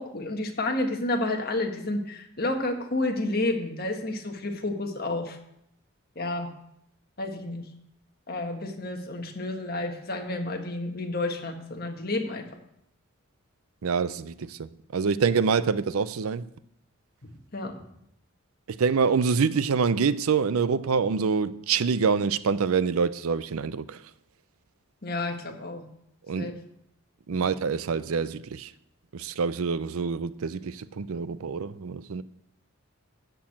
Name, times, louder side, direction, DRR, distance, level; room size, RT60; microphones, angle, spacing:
voice 1, 0.0-5.4 6.1-6.5 7.2-7.6 8.3-12.4 17.2-17.7 25.0-25.9 26.3-26.6 27.3-27.4, left 2 dB, 45° left, 1.5 m, -30 dB
voice 2, 13.8-16.5 18.7-24.0 26.3-26.5 27.3-28.7 29.1-32.2, right 5 dB, 80° right, 0.5 m, -26 dB
13.0 x 4.7 x 8.5 m
head